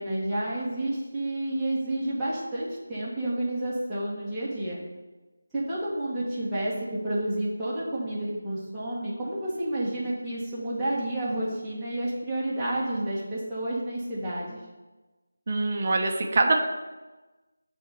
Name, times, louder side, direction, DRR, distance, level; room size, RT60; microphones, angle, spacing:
voice 1, 0.0-4.8 5.5-6.7 7.0-14.6, right 1 dB, ahead, -15 dB, 1.7 m, -30 dB
voice 2, 15.5-16.6, right 2 dB, 35° right, 2 dB, 1.1 m, -24 dB
9.1 x 3.7 x 6.8 m, 1.2 s
figure-of-eight pair, 170°, 0 cm